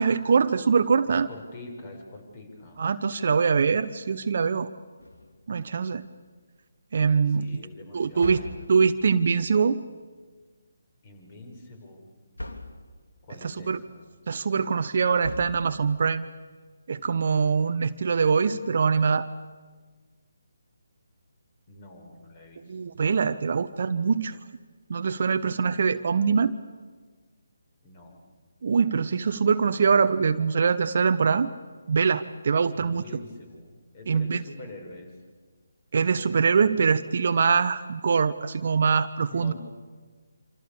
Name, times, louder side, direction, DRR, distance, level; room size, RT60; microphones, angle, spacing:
voice 1, 0.0-1.3 2.8-4.7 5.5-6.0 6.9-7.5 7.9-8.4 8.7-9.8 13.4-13.8 14.3-16.2 16.9-19.3 22.7-24.4 24.9-26.6 28.6-31.5 31.9-33.0 34.1-34.4 35.9-39.5, right 5 dB, 45° right, 10 dB, 0.9 m, -23 dB
voice 2, 1.1-2.8 7.3-8.7 11.0-12.0 13.2-14.1 21.7-23.0 27.8-28.2 32.7-35.1 39.3-39.5, left 2 dB, 30° left, 3 dB, 6.3 m, -45 dB
sound 1, 5.0-5.7 8.2-9.1 12.4-13.0 15.2-16.0, left 1 dB, 75° left, 3.1 m, -39 dB
27.5 x 27.0 x 7.1 m, 1.5 s
figure-of-eight pair, 145°, 0 cm